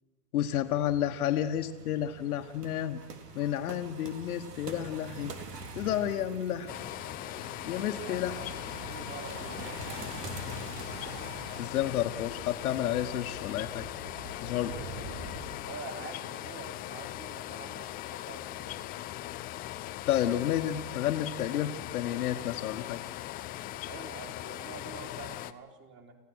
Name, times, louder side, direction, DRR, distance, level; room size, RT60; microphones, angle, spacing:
voice 1, 0.3-3.0 3.3-5.3 5.7-6.7 7.6-8.4 11.6-13.8 14.4-14.7 20.1-23.0, left 11 dB, 70° left, 5 dB, 1.5 m, -31 dB
sound 1, 0.6-11.7, right 3 dB, 85° right, 3.6 m, -45 dB
sound 2, 6.7-25.5, left 15 dB, 20° left, 0.6 m, -40 dB
voice 2, 8.0-10.2 15.7-18.9 23.9-26.2, right 4 dB, 25° right, 4 dB, 3.6 m, -47 dB
sound 3, 8.2-15.5, right 2 dB, 45° right, 3.5 m, -47 dB
27.0 x 16.5 x 6.3 m, 1.1 s
hypercardioid pair, 135°, 46 cm